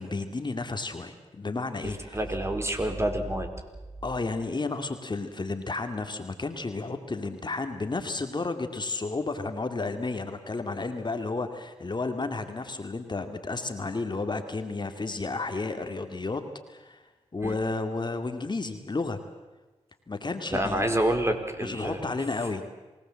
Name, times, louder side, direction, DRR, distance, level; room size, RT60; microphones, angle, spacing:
voice 1, 0.0-2.2 4.0-16.4 16.7-17.0 17.3-19.2 20.1-20.8 21.6-22.6, left 3 dB, 40° left, 7 dB, 2.4 m, -32 dB
voice 2, 2.1-3.5 17.4-17.5 20.5-22.1, right 1 dB, 20° right, 5 dB, 4.5 m, -27 dB
27.5 x 18.5 x 7.7 m, 1.2 s
cardioid pair, 50°, 12 cm